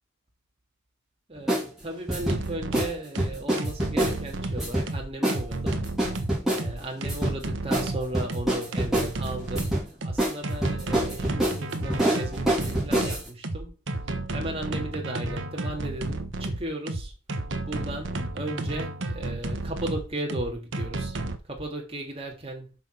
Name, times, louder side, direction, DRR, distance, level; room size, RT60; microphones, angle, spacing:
voice 1, 1.3-5.9 6.4-9.7 10.0-13.8 14.3-17.1 17.7-21.2 21.4-22.7, right 1 dB, 25° right, 2.8 m, -36 dB
sound 1, 1.5-1.6 2.1-2.4 2.7-2.9 3.2-4.2 4.6-4.9 5.2-5.4 5.7-6.6 7.0-7.4 7.7-7.9 8.1-9.1 9.5-9.9 10.2-10.3 10.6-13.3, right 1 dB, ahead, 3.3 m, -25 dB
sound 2, 2.2-21.4, right 2 dB, 60° right, 1.2 m, -32 dB
6.4 x 5.6 x 6.7 m
head